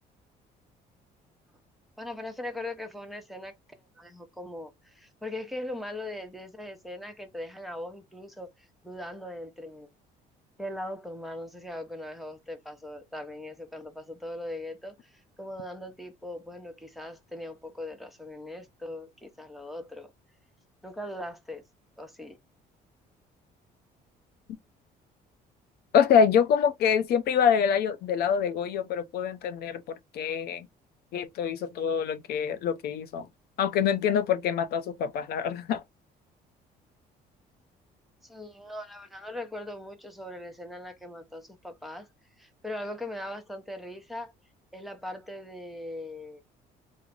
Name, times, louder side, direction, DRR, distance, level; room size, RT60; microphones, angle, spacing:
voice 1, 2.0-9.9 10.6-20.1 20.8-21.6 22.0-22.4 38.2-42.1 42.4-44.3 44.7-46.4, left 1 dB, ahead, 0.7 m, -40 dB
voice 2, 25.9-30.7 31.1-33.3 33.6-35.8, left 7 dB, 65° left, 0.5 m, -25 dB
3.1 x 2.0 x 3.6 m
cardioid pair, 110°, 17 cm